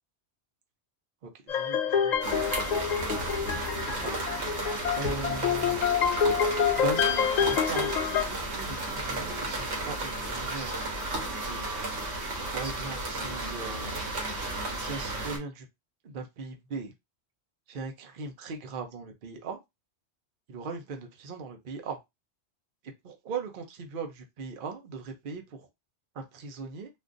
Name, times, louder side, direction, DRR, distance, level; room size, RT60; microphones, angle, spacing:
sound 1, 1.5-8.2, left 7 dB, 55° left, 0.5 m, -27 dB
voice 1, 1.5-2.8 4.0-4.2 5.0-5.8 6.8-10.9 11.5-11.7 12.5-14.0 14.8-15.7 16.0-16.9 17.7-19.6 20.5-22.0 23.0-25.7 26.2-26.9, right 4 dB, 55° right, 0.8 m, -39 dB
sound 2, 2.2-15.4, right 2 dB, 75° right, 1.3 m, -33 dB
3.6 x 2.5 x 2.5 m
omnidirectional pair, 1.2 m